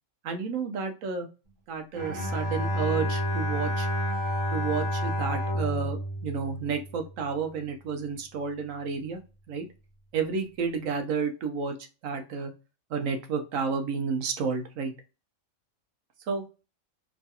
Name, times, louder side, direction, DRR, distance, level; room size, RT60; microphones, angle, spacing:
voice 1, 0.2-1.3 1.7-3.9 4.5-9.2 9.5-9.6 10.1-11.7 12.0-12.5 12.9-14.9 16.3-16.4, right 5 dB, 90° right, 5 dB, 1.1 m, -31 dB
Bowed string instrument, 1.9-7.2, equal, 65° right, 1.4 m, -30 dB
3.0 x 2.3 x 2.7 m, 0.32 s
omnidirectional pair, 1.3 m